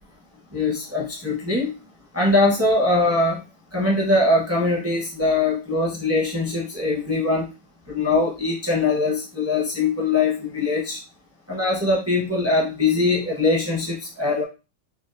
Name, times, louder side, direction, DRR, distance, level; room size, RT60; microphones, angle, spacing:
voice 1, 0.5-1.7 2.1-3.4 3.7-7.5 7.9-11.0 11.5-14.4, left 2 dB, 20° right, -3 dB, 0.4 m, -22 dB
4.3 x 2.3 x 2.5 m, 0.30 s
omnidirectional pair, 1.8 m